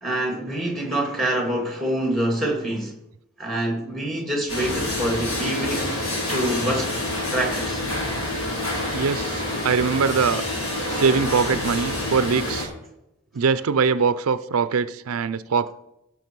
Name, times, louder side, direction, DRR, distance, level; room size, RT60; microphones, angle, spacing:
voice 1, 0.0-3.0 3.4-5.9 6.3-7.8, right 1 dB, ahead, 2.4 m, -26 dB
sound 1, 4.5-12.7, left 1 dB, 85° left, 4.0 m, -27 dB
voice 2, 8.9-10.4 10.9-12.7 13.3-15.7, right 5 dB, 90° right, 0.5 m, -22 dB
16.5 x 6.0 x 4.6 m
head